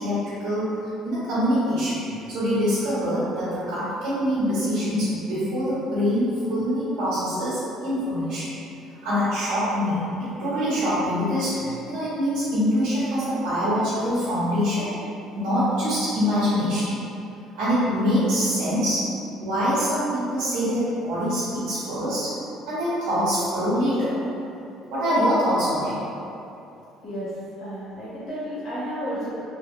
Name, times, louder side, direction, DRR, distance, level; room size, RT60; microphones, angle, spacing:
voice 1, 0.0-8.5 9.0-14.9 15.4-17.0 17.5-19.1 19.4-22.3 22.6-24.1 24.9-25.9, equal, 80° right, -11 dB, 1.0 m, -24 dB
voice 2, 27.6-29.4, equal, 65° left, -11 dB, 1.0 m, -32 dB
3.2 x 2.2 x 3.2 m, 2.7 s
cardioid pair, 175°, 0 cm